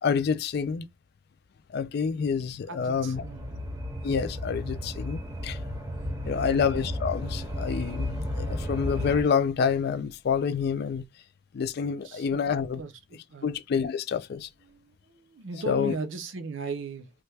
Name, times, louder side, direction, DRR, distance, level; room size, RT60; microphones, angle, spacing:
voice 1, 0.0-0.9 1.7-3.2 4.0-5.6 6.2-11.1 11.5-12.8 13.4-14.5 15.7-15.9, left 6 dB, 60° left, 0.4 m, -28 dB
voice 2, 2.7-3.6 6.3-6.7 12.0-12.4 12.7-12.9 13.3-13.5 14.7-17.1, right 3 dB, 85° right, 0.6 m, -37 dB
sound 1, 3.1-9.2, left 1 dB, 15° right, 0.7 m, -33 dB
3.2 x 2.2 x 3.2 m
head